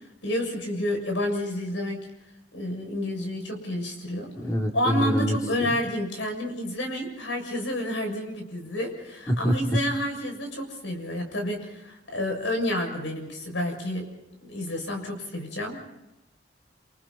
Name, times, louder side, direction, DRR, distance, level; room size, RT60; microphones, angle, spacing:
voice 1, 0.2-2.0 2.5-4.3 4.7-14.1 14.4-15.8, left 1 dB, 85° left, 3 dB, 7.0 m, -30 dB
voice 2, 4.4-5.7 9.3-9.5, equal, 20° left, 1 dB, 2.8 m, -26 dB
28.5 x 28.0 x 4.3 m, 0.96 s
head